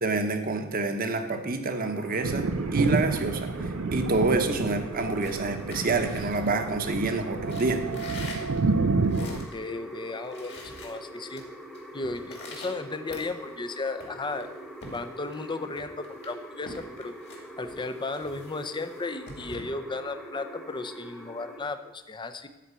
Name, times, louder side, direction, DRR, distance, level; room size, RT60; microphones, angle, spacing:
voice 1, 0.0-7.9, right 3 dB, 45° right, 6 dB, 1.0 m, -28 dB
sound 1, 1.7-21.6, equal, ahead, 1.2 m, -44 dB
Thunder, 2.2-9.5, right 3 dB, 75° right, 0.5 m, -29 dB
sound 2, 5.0-7.0 7.4-9.6 9.9-10.0 10.2-11.4 11.7-13.6 14.0-15.5 15.8-19.6, left 2 dB, 55° left, 2.3 m, -45 dB
voice 2, 9.1-11.4 11.9-14.5 14.8-17.1 17.6-22.5, left 3 dB, 25° left, 9 dB, 0.6 m, -35 dB
13.0 x 4.3 x 8.2 m, 1.1 s
head